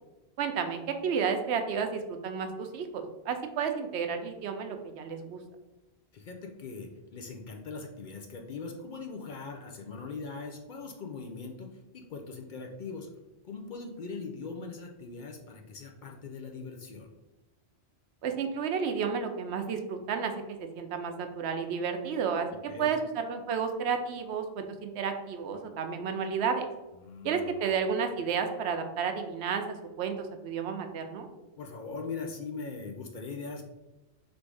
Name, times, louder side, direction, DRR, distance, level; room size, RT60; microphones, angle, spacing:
voice 1, 0.4-5.4 18.2-26.7 27.2-31.3, right 6 dB, 80° right, 6 dB, 0.8 m, -32 dB
voice 2, 6.1-13.1 13.4-17.1 22.5-22.9 26.9-27.7 31.6-33.6, left 4 dB, 55° left, 2 dB, 0.6 m, -41 dB
3.4 x 2.6 x 4.6 m, 1.0 s
omnidirectional pair, 1.1 m